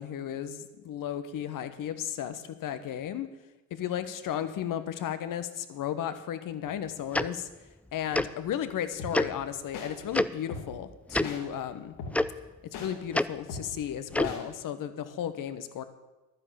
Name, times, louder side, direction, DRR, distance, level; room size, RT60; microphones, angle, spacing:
voice 1, 0.0-3.3 3.7-7.5 7.9-12.0 12.8-15.8, left 10 dB, 50° left, 11 dB, 1.3 m, -34 dB
Tick-tock, 7.1-7.3 8.1-8.3 9.1-9.3 10.1-10.3 11.1-11.3 12.1-12.2 13.1-13.3 14.1-14.3, left 1 dB, 5° left, 0.4 m, -25 dB
sound 1, 9.0-9.1 9.7-9.9 10.5-10.6 11.2-11.4 12.0-12.1 12.7-12.9 13.5-13.6 14.2-14.4, left 4 dB, 65° left, 3.6 m, -37 dB
12.0 x 9.9 x 7.0 m, 1.1 s
hypercardioid pair, 65°, 42 cm